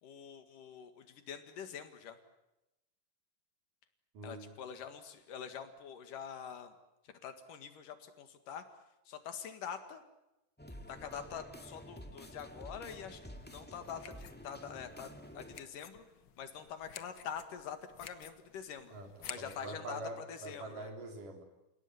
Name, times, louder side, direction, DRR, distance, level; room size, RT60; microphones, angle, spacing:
voice 1, 0.0-2.2 4.2-6.7 7.0-8.6 9.1-10.0 10.9-16.0 16.4-18.9 19.3-20.9, left 7 dB, 80° left, 8 dB, 3.5 m, -45 dB
voice 2, 4.1-4.5 18.9-21.4, right 2 dB, 80° right, 3 dB, 5.4 m, -45 dB
sound 1, 10.6-15.6, equal, 5° left, 1.2 m, -50 dB
sound 2, 13.3-19.7, left 9 dB, 60° left, 1.3 m, -53 dB
30.0 x 17.0 x 9.5 m, 0.93 s
omnidirectional pair, 3.7 m